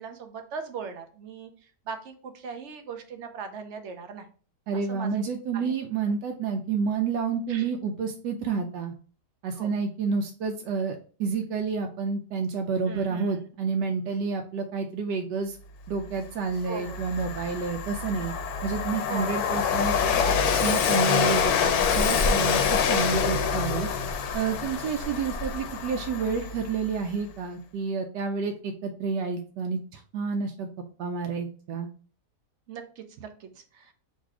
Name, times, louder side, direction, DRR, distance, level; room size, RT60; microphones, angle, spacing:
voice 1, 0.0-1.5 1.9-4.3 4.9-5.2 5.5-5.7 7.5-7.7 9.6-9.7 12.9-13.5 16.7-17.0 19.1-19.4 32.7-33.9, right 6 dB, 65° right, 6 dB, 0.7 m, -39 dB
voice 2, 4.7-8.9 9.4-15.6 15.9-18.3 18.6-19.9 20.6-23.9 24.3-30.7 31.0-31.9, right 5 dB, 90° right, 3 dB, 1.2 m, -29 dB
Train, 16.0-16.1 16.5-26.9, left 7 dB, 70° left, 1.0 m, -26 dB
sound 1, 21.1-25.9, equal, 55° left, 0.3 m, -35 dB
4.0 x 2.7 x 4.7 m, 0.40 s
omnidirectional pair, 1.8 m